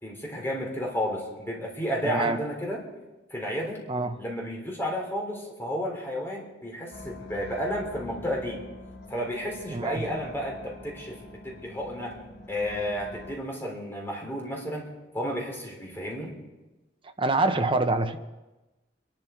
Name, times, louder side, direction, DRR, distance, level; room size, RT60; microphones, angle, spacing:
voice 1, 0.0-2.8 3.3-3.8 4.2-8.6 9.1-12.2 12.5-14.9 15.1-16.3, equal, 15° left, -1 dB, 3.6 m, -32 dB
voice 2, 2.0-2.4 3.9-4.2 9.7-10.0 17.2-18.2, right 2 dB, 30° right, 7 dB, 1.0 m, -25 dB
sound 1, 6.9-13.4, left 2 dB, 60° left, 3.7 m, -45 dB
26.5 x 12.0 x 4.6 m, 1.1 s
head